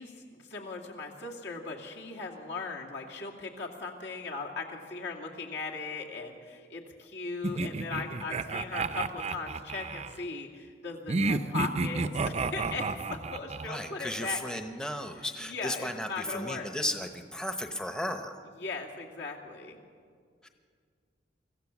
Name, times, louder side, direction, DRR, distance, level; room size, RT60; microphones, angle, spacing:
voice 1, 0.0-14.6 15.4-16.7 18.6-19.8, left 4 dB, 65° left, 0 dB, 2.6 m, -38 dB
sound 1, 7.4-10.1 11.1-13.7, right 3 dB, 35° right, 0.6 m, -31 dB
voice 2, 13.6-18.4 20.4-20.5, left 1 dB, 5° left, 6 dB, 0.9 m, -35 dB
24.0 x 14.5 x 7.3 m, 2.1 s
head